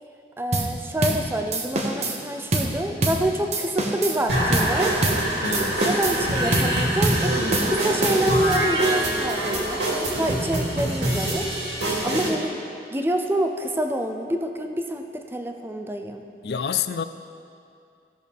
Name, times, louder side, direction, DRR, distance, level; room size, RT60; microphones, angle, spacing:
voice 1, 0.4-5.0 5.8-7.4 7.7-11.5 12.0-12.5 12.9-16.2, right 1 dB, 15° right, 4 dB, 0.5 m, -27 dB
sound 1, 0.5-0.7 1.0-1.2 1.5-2.2 2.5-2.7 3.0-3.2 3.5-4.2 4.5-4.7 5.0-5.2 5.5-6.2 6.5-6.7 7.0-7.2 7.5-8.4, right 2 dB, 40° right, 1.0 m, -25 dB
sound 2, 4.3-12.3, right 1 dB, 85° right, 2.4 m, -24 dB
voice 2, 5.4-5.9 16.4-17.0, left 7 dB, 65° left, 11 dB, 0.4 m, -28 dB
16.5 x 6.2 x 3.5 m, 2.5 s
head